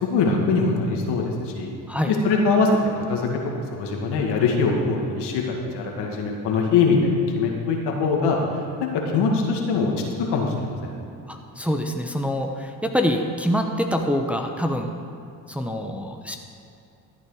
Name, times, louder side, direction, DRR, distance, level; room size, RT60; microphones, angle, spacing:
voice 1, 0.0-1.7 2.1-2.7 3.0-8.4 8.9-9.9 10.3-10.9, left 4 dB, 75° left, 0 dB, 2.1 m, -22 dB
voice 2, 11.3-14.9 15.5-16.4, equal, 5° right, 3 dB, 1.0 m, -25 dB
13.5 x 8.2 x 4.9 m, 2.7 s
supercardioid pair, 70°, 42 cm